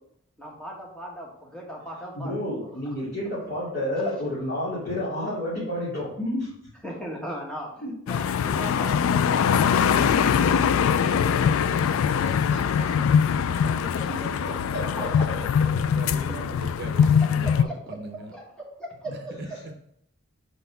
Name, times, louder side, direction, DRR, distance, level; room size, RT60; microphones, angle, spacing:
voice 1, 0.4-2.3 2.6-2.9 6.8-9.6 15.0-15.3 17.2-19.6, equal, 5° left, -2 dB, 1.2 m, -38 dB
voice 2, 2.1-6.5 7.8-7.9 14.7-15.1, left 1 dB, 50° left, -10 dB, 2.5 m, -30 dB
sound 1, 8.1-17.6, left 7 dB, 90° left, 0.3 m, -22 dB
voice 3, 12.1-14.8, left 3 dB, 35° left, -2 dB, 0.9 m, -42 dB
voice 4, 15.7-18.3 19.3-19.5, right 2 dB, 50° right, 6 dB, 0.6 m, -39 dB
5.0 x 4.0 x 5.5 m, 0.72 s
head